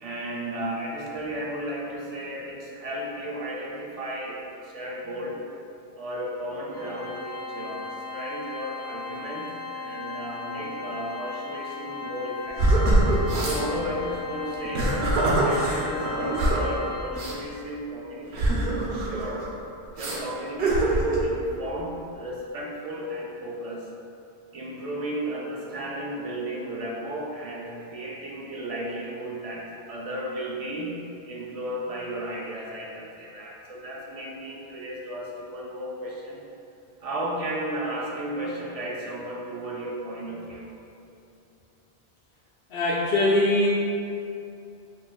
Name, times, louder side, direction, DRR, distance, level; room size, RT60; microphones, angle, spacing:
voice 1, 0.0-5.4 6.0-12.9 13.4-19.5 20.0-23.9 24.5-36.4 37.0-40.7, right 1 dB, 50° right, -3 dB, 0.5 m, -34 dB
Organ, 6.7-17.5, left 4 dB, 50° left, 0.7 m, -37 dB
sound 1, 12.6-13.6 14.5-16.7 17.1-17.3 18.3-19.5 20.0-20.2 20.6-21.3, right 1 dB, 70° right, 0.8 m, -23 dB
voice 2, 42.7-43.7, left 1 dB, 75° left, -7 dB, 0.9 m, -22 dB
5.9 x 2.4 x 2.2 m, 2.7 s
omnidirectional pair, 1.1 m